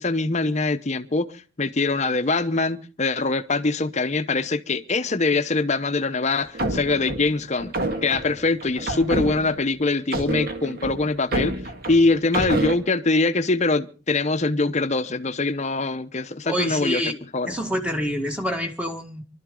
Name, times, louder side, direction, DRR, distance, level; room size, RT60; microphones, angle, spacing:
voice 1, 0.0-1.3 1.6-11.6 11.9-17.5, left 3 dB, 35° left, 0.8 m, -23 dB
sound 1, 6.4-9.7 10.1-12.7, right 1 dB, 50° right, 1.9 m, -28 dB
voice 2, 16.4-17.2 17.4-19.2, equal, 5° right, 1.8 m, -27 dB
24.0 x 12.5 x 3.8 m
head